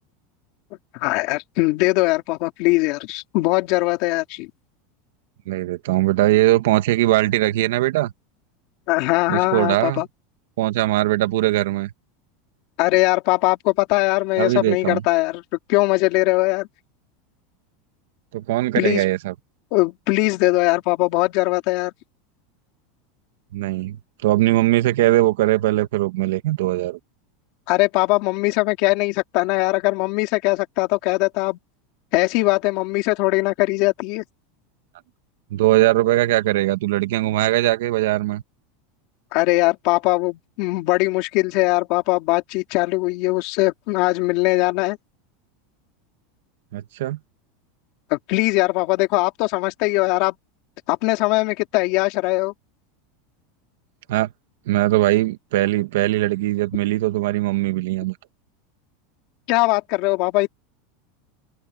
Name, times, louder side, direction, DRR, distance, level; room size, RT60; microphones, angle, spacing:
voice 1, 0.9-4.5 8.9-10.1 12.8-15.4 15.7-16.7 18.8-19.0 19.7-21.9 27.7-31.6 32.1-34.2 39.3-45.0 48.1-50.3 50.9-52.5 59.5-60.5, left 22 dB, 50° left, 3.3 m, -20 dB
voice 2, 5.5-8.1 9.3-10.0 10.6-11.9 14.4-15.0 18.3-19.3 23.5-27.0 35.5-38.4 46.7-47.2 54.1-54.3 54.7-58.2, right 16 dB, 75° right, 1.8 m, -20 dB
supercardioid pair, 165°, 0 cm